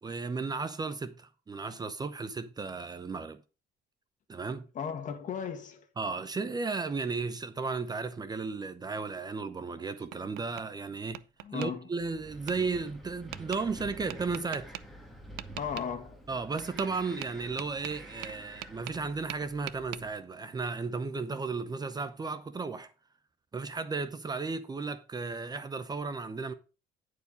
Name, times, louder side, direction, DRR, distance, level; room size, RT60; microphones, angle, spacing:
voice 1, 0.0-3.4 4.3-4.7 6.0-11.2 11.5-14.7 16.3-22.9 23.5-26.5, right 4 dB, 25° right, 0.7 m, -34 dB
voice 2, 4.8-5.9 11.4-11.9 15.6-16.2, left 7 dB, 50° left, 1.8 m, -36 dB
Tap, 9.6-10.7 11.1-11.7 12.5-12.6 13.3-13.6 14.1-14.8 15.4-15.9 16.6-16.9 17.2-19.0 19.3-20.0, right 16 dB, 85° right, 0.5 m, -41 dB
Wind, 12.0-20.1, equal, ahead, 2.2 m, -49 dB
10.0 x 4.8 x 5.1 m
cardioid pair, 110°, 17 cm